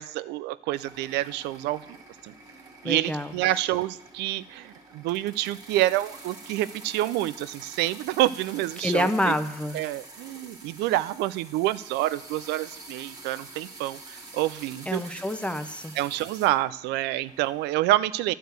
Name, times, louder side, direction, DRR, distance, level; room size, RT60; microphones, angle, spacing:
voice 1, 0.0-1.8 2.2-2.3 2.8-9.3 9.7-15.2 16.0-18.3, right 15 dB, 90° right, 18 dB, 0.4 m, -28 dB
sound 1, 0.7-17.7, right 2 dB, 20° right, 1.6 m, -47 dB
voice 2, 2.8-3.3 8.8-9.8 14.9-15.9, left 1 dB, 5° left, 10 dB, 0.6 m, -27 dB
11.0 x 4.7 x 7.9 m, 0.85 s
cardioid pair, 110°, 17 cm